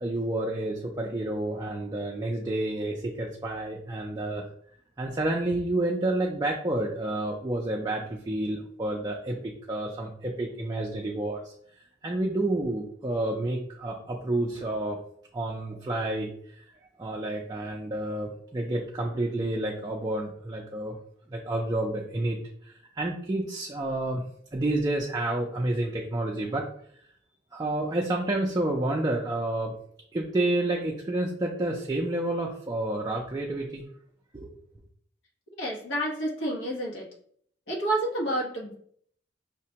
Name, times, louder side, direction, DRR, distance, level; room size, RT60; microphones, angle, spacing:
voice 1, 0.0-4.5 5.0-11.5 12.0-15.0 15.3-16.3 16.6-16.7 17.0-21.0 21.3-24.2 24.5-26.7 27.5-29.7 30.1-33.9 34.3-34.5, right 1 dB, 20° right, -1 dB, 0.4 m, -29 dB
voice 2, 35.6-37.1 37.7-38.8, right 1 dB, 85° left, -3 dB, 1.1 m, -29 dB
5.7 x 2.1 x 2.8 m, 0.63 s
head